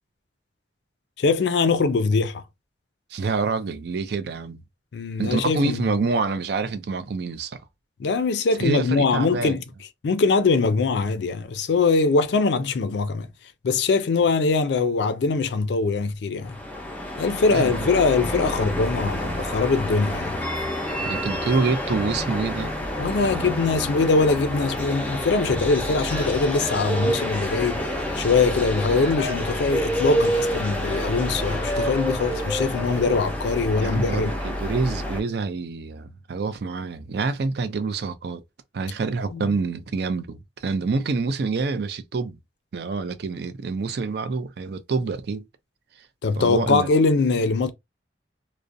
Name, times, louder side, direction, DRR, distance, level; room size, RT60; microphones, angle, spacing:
voice 1, 1.2-2.4 4.9-5.9 8.0-9.6 10.0-13.3 13.6-16.6 17.2-20.4 23.0-27.9 28.2-34.3 39.2-39.5 46.2-47.7, left 4 dB, 65° left, 0.4 m, -22 dB
voice 2, 3.1-4.6 5.2-7.6 8.6-9.6 17.5-17.8 21.0-22.7 23.2-23.5 33.8-38.4 38.7-42.4 42.7-45.4 46.4-46.9, right 4 dB, 60° right, 0.4 m, -27 dB
sound 1, 16.4-35.2, left 1 dB, 10° left, 0.5 m, -29 dB
sound 2, 26.1-33.2, right 2 dB, 45° right, 1.0 m, -29 dB
2.4 x 2.0 x 2.6 m
head